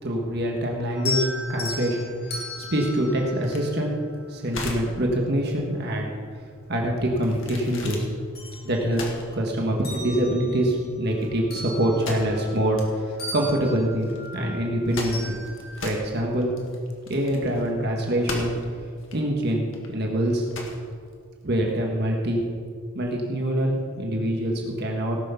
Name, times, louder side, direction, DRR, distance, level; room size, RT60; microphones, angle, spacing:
voice 1, 0.0-3.9 4.3-6.1 6.7-8.1 8.6-9.0 9.3-15.3 15.8-16.5 17.1-18.5 19.1-20.5 21.4-22.4 22.9-25.2, right 1 dB, 50° right, 0 dB, 1.5 m, -25 dB
sound 1, 0.9-4.3 5.9-6.0 6.5-7.7 8.1-9.3 9.7-12.9 13.2-15.9, left 2 dB, 45° left, 2.5 m, -37 dB
sound 2, 3.4-21.9, left 2 dB, 60° left, 1.9 m, -39 dB
18.0 x 6.5 x 5.7 m, 2.1 s
head